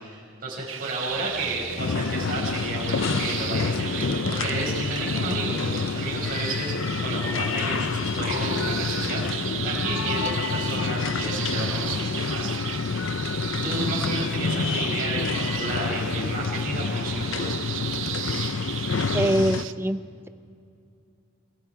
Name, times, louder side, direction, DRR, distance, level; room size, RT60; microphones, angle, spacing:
voice 1, 0.0-9.4 9.6-12.8 13.6-17.6, right 2 dB, 45° right, -5 dB, 5.5 m, -32 dB
sound 1, 0.7-19.7, right 12 dB, 70° right, 0.7 m, -35 dB
sound 2, 1.1-16.2 17.3-17.9, left 2 dB, 35° left, 3.0 m, -44 dB
sound 3, 1.8-19.7, left 5 dB, 70° left, 0.6 m, -28 dB
voice 2, 19.1-20.0, right 1 dB, 10° right, 11 dB, 0.6 m, -23 dB
29.5 x 26.0 x 4.8 m, 2.5 s
head